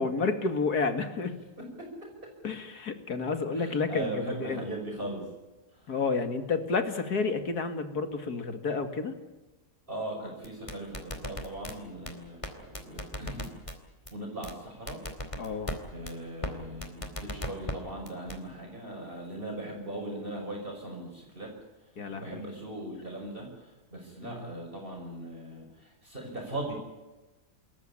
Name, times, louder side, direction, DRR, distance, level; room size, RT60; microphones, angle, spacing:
voice 1, 0.0-1.4 2.4-4.6 5.9-9.1 15.4-15.7 22.0-22.4 24.2-24.4, left 4 dB, 80° left, 8 dB, 2.7 m, -30 dB
voice 2, 3.5-5.2 9.9-13.5 14.1-15.0 15.9-21.5 22.1-23.5 23.9-26.7, right 1 dB, 35° right, -1 dB, 6.0 m, -39 dB
sound 1, 10.4-11.7 12.1-12.2 12.4-12.5 12.7-13.7 14.1-14.2 14.4-14.5 14.9-15.8 16.1-16.2 16.4-16.5 16.8-17.7 18.1-18.4, left 1 dB, 20° left, 2.7 m, -35 dB
27.5 x 14.5 x 10.0 m, 1.1 s
omnidirectional pair, 1.6 m